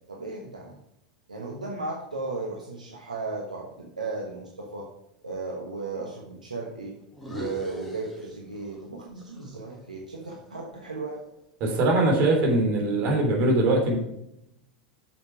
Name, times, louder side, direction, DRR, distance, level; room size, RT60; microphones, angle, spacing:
voice 1, 0.1-0.8 1.3-4.9 5.2-7.0 7.2-11.2, right 3 dB, 85° right, -1 dB, 1.3 m, -35 dB
sound 1, 7.1-8.9 9.2-11.4, equal, ahead, 2.2 m, -41 dB
voice 2, 11.6-14.0, right 2 dB, 45° right, 1 dB, 3.3 m, -22 dB
7.4 x 7.1 x 4.8 m, 0.81 s
figure-of-eight pair, 85°, 4 cm